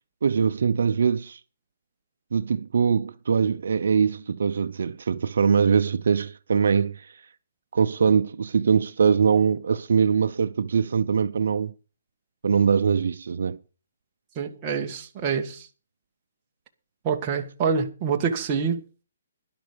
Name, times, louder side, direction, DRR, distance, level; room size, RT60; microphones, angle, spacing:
voice 1, 0.2-1.4 2.3-7.2 7.7-11.7 12.4-13.6, right 6 dB, 65° right, 0.6 m, -22 dB
voice 2, 14.3-15.7 17.0-18.8, right 6 dB, 20° right, 1.6 m, -26 dB
11.5 x 11.5 x 5.2 m
hypercardioid pair, 170°, 0 cm